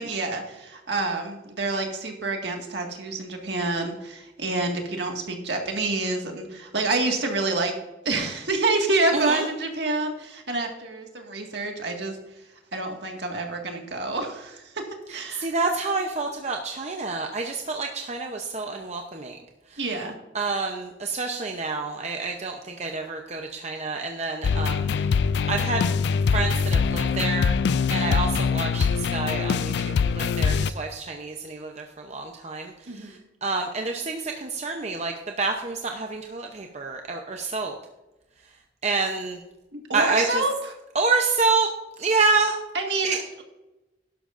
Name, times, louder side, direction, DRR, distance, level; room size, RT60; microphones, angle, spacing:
voice 1, 0.0-7.8 8.1-12.2 12.7-15.5 19.8-20.1 32.9-33.1 39.7-40.7 42.7-43.4, right 2 dB, 65° right, 2 dB, 1.8 m, -28 dB
voice 2, 9.1-9.4 15.3-19.4 20.3-24.9 25.5-25.8 26.3-27.6 27.9-37.8 38.8-39.4 39.9-40.4 40.9-41.7 42.0-42.6 43.0-43.2, right 4 dB, 35° right, 3 dB, 0.7 m, -28 dB
sound 1, 24.4-30.7, left 5 dB, 65° left, 0.3 m, -23 dB
12.0 x 11.5 x 2.6 m, 1.0 s
head